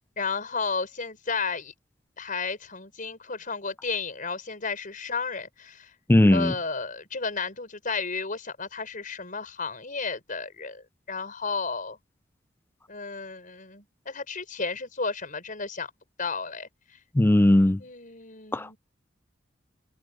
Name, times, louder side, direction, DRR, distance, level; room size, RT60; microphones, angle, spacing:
voice 1, 0.2-1.7 2.2-5.9 6.3-12.0 12.9-15.9 16.2-16.7 17.8-18.8, left 4 dB, 45° left, 5.6 m, -33 dB
voice 2, 6.1-6.5 17.2-17.8 18.5-18.7, left 1 dB, 10° left, 0.4 m, -18 dB
head